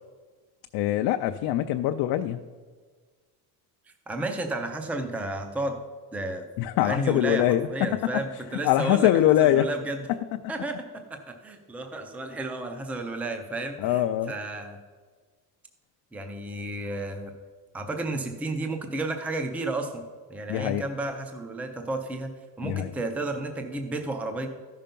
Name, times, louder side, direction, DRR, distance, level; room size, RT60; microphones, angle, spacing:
voice 1, 0.7-2.4 6.6-7.7 8.6-9.7 13.8-14.3 20.5-20.8 22.6-22.9, left 12 dB, 65° left, 6 dB, 0.5 m, -23 dB
voice 2, 4.1-5.8 6.1-6.5 6.8-10.1 10.5-10.8 11.1-14.8 16.1-17.3 17.7-20.0 20.3-24.5, right 2 dB, 5° right, 5 dB, 0.4 m, -32 dB
13.5 x 5.7 x 5.2 m, 1.5 s
cardioid pair, 175°, 43 cm